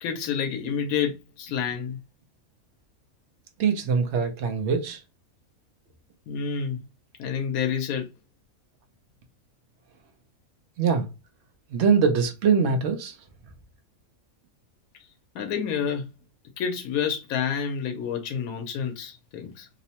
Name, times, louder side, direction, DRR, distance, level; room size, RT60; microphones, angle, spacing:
voice 1, 0.0-2.0 6.3-6.8 7.2-8.1 15.3-16.1 16.6-19.7, left 7 dB, 85° left, 1.0 m, -29 dB
voice 2, 3.6-5.0 10.8-11.1 11.7-13.2, right 6 dB, 65° right, 0.8 m, -23 dB
2.9 x 2.0 x 2.8 m
omnidirectional pair, 1.5 m